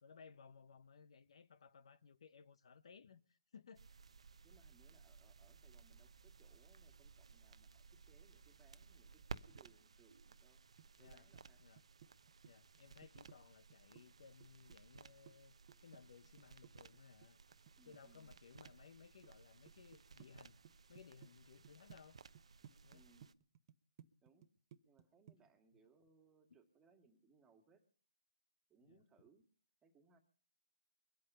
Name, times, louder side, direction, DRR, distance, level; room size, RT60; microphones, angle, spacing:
voice 1, 0.0-4.0 11.0-11.3 11.6-11.8 12.4-15.5 15.8-17.4 17.9-20.6 20.9-22.2 22.8-23.0 28.8-29.0, left 6 dB, 60° left, 0.8 m, -61 dB
sound 1, 3.7-23.3, right 5 dB, 75° right, 0.8 m, -59 dB
voice 2, 4.4-10.6 11.0-11.6 17.8-18.3 22.9-23.3 24.2-24.5 24.9-27.8 28.7-29.4 29.8-30.2, right 5 dB, 15° right, 2.0 m, -71 dB
sound 2, 10.8-11.4 11.8-13.4 13.7-15.4 15.7-18.4 18.7-19.3 19.7-20.3 20.6-21.3 21.6-22.0 22.3-25.0 25.3-25.5, right 10 dB, 40° right, 1.0 m, -61 dB
22.5 x 8.6 x 5.6 m
hypercardioid pair, 145°, 3 cm